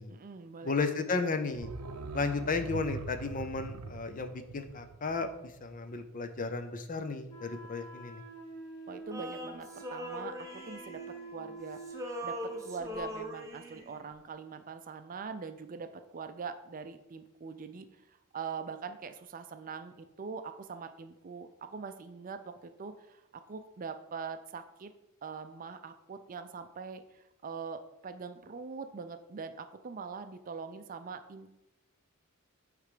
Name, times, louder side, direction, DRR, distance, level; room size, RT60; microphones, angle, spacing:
voice 1, 0.1-0.7 8.9-11.0 11.3-24.9 25.2-31.5, right 5 dB, 40° right, 8 dB, 0.5 m, -43 dB
voice 2, 0.6-1.7 2.1-8.2, left 4 dB, 40° left, 9 dB, 0.6 m, -34 dB
sound 1, 1.5-6.3 6.6-6.7, right 3 dB, 85° right, 0.6 m, -43 dB
Wind instrument woodwind instrument, 7.3-13.2, right 3 dB, 70° left, 1.7 m, -48 dB
Male singing, 9.1-11.6 11.8-14.0, equal, 15° right, 0.9 m, -41 dB
8.2 x 3.3 x 5.0 m, 0.90 s
head